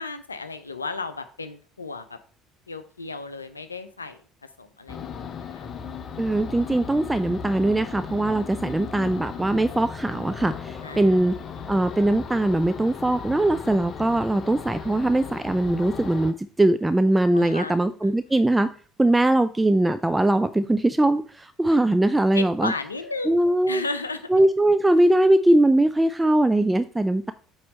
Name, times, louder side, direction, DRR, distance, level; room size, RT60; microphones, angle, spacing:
voice 1, 0.0-2.2 2.7-4.2 4.6-5.2 5.5-5.7 10.8-11.1 17.3-18.1 22.3-23.4 23.7-24.3, left 3 dB, 90° left, 11 dB, 0.5 m, -34 dB
sound 1, 4.9-16.3, left 6 dB, 40° left, 0.8 m, -36 dB
voice 2, 6.2-11.3 11.7-18.7 19.0-22.7 23.3-23.8 24.3-27.3, right 1 dB, 10° right, 11 dB, 0.4 m, -21 dB
8.4 x 3.0 x 5.3 m, 0.43 s
figure-of-eight pair, 60°, 0 cm